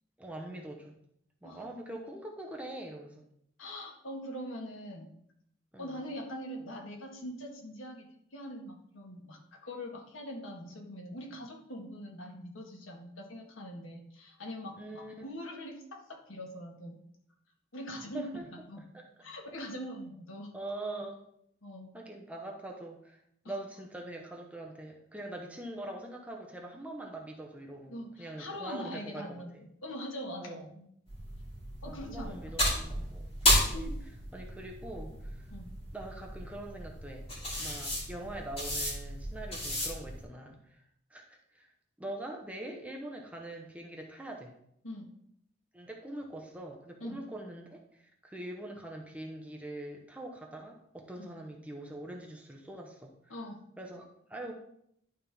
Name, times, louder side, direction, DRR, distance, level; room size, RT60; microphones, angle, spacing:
voice 1, 0.2-1.0 1.4-3.2 5.7-6.0 14.8-15.2 18.1-18.4 18.9-19.0 20.5-21.2 21.9-23.2 23.4-29.6 30.4-30.7 31.8-33.9 34.3-35.5 35.9-37.3 37.6-40.8 41.1-41.7 42.0-44.5 45.7-53.4 53.8-54.5, right 1 dB, 5° right, 1 dB, 0.9 m, -43 dB
voice 2, 3.6-5.1 5.8-8.1 8.3-17.0 17.7-18.8 19.2-20.5 21.6-21.9 23.4-23.5 27.8-30.9 31.8-32.4 33.7-34.0 35.5-35.7 44.8-45.1 47.0-47.2 51.2-51.3 53.3-53.6, equal, 85° left, 1 dB, 1.6 m, -42 dB
sound 1, 31.1-40.2, equal, 30° left, 2.6 m, -33 dB
11.0 x 4.3 x 3.5 m, 0.71 s
head